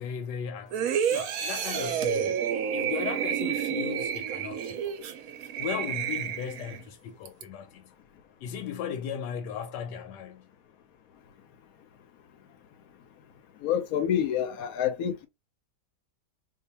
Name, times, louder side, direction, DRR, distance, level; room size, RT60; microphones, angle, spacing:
voice 1, 0.0-2.5 2.7-5.0 5.6-7.9 8.4-10.5, left 8 dB, 85° left, 1.2 m, -37 dB
sound 1, 0.7-6.8 7.3-7.4, right 8 dB, 70° right, 0.9 m, -30 dB
voice 2, 13.6-15.3, left 9 dB, 65° left, 0.9 m, -27 dB
2.7 x 2.4 x 4.0 m
omnidirectional pair, 1.9 m